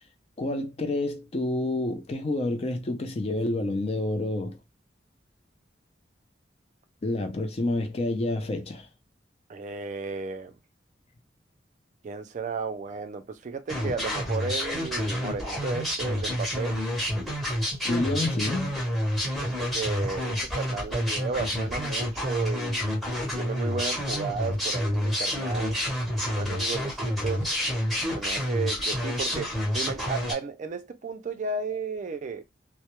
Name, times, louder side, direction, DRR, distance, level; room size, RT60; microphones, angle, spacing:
voice 1, 0.4-4.6 7.0-8.9 17.8-18.7, left 2 dB, 35° left, 0.4 m, -28 dB
voice 2, 9.5-10.5 12.0-16.8 19.4-22.9 23.4-25.8 26.3-27.5 28.2-32.4, right 4 dB, 40° right, 0.4 m, -34 dB
sound 1, 13.7-30.3, equal, ahead, 0.7 m, -29 dB
2.2 x 2.0 x 2.9 m
head